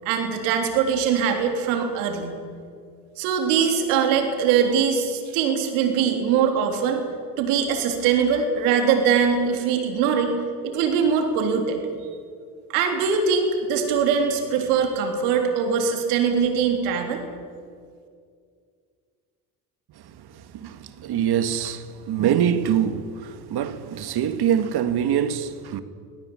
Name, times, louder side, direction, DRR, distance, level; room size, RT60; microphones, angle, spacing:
voice 1, 0.1-2.3 3.2-7.0 7.4-10.3 10.6-11.8 12.7-17.2, right 6 dB, 85° right, 3.6 m, -22 dB
voice 2, 20.0-25.8, right 9 dB, 60° right, 1.8 m, -24 dB
25.0 x 17.5 x 8.7 m
hypercardioid pair, 70°, 44 cm